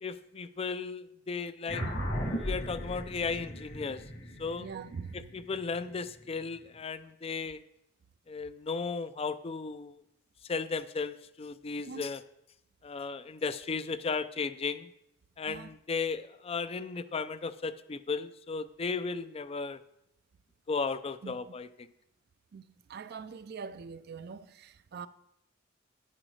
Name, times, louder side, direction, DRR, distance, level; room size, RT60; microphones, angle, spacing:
voice 1, 0.0-1.8 2.3-4.0 4.4-4.7 5.3-7.6 8.3-10.0 10.5-12.2 12.8-14.9 15.4-19.8 20.7-21.7, left 4 dB, 30° left, 0.4 m, -35 dB
sound 1, 1.7-6.4, equal, 65° left, 2.5 m, -37 dB
voice 2, 4.6-5.3 11.9-12.0 15.5-15.7 21.2-21.4 22.5-25.1, right 5 dB, 50° right, 0.4 m, -43 dB
9.9 x 9.9 x 3.2 m
head